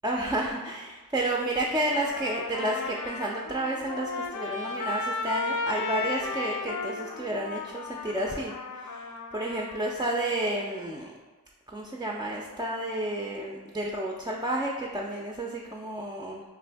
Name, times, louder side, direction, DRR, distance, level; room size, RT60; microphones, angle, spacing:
voice 1, 0.0-9.0 9.3-11.1 11.7-16.4, right 1 dB, 15° right, -2 dB, 0.3 m, -31 dB
Trumpet, 1.9-10.0, left 4 dB, 60° left, 0.5 m, -35 dB
2.5 x 2.5 x 3.3 m, 1.3 s
cardioid pair, 45°, 36 cm